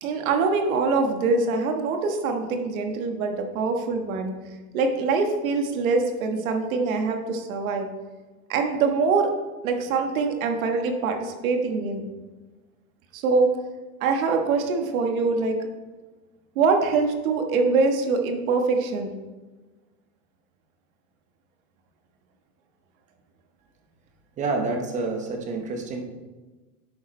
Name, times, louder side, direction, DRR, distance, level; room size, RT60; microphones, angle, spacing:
voice 1, 0.0-4.4 4.7-7.9 8.5-9.3 9.6-12.1 13.1-13.5 14.0-15.6 16.5-19.1, right 4 dB, 55° right, 4 dB, 1.4 m, -24 dB
voice 2, 24.4-26.0, right 3 dB, 15° right, 3 dB, 0.8 m, -28 dB
11.0 x 4.8 x 4.3 m, 1.2 s
supercardioid pair, 155°, 48 cm